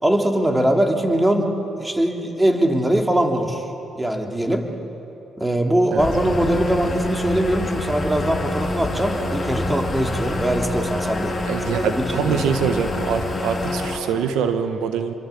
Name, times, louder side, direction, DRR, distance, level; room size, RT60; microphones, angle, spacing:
voice 1, 0.0-1.5 1.8-3.7 3.9-4.7 5.4-11.4 11.7-12.4, right 1 dB, 10° right, 3 dB, 3.1 m, -21 dB
sound 1, 6.0-14.0, left 1 dB, 30° left, 6.1 m, -26 dB
voice 2, 11.5-15.1, right 7 dB, 90° right, 8 dB, 1.5 m, -24 dB
28.0 x 23.0 x 8.6 m, 2.9 s
cardioid pair, 90°, 0 cm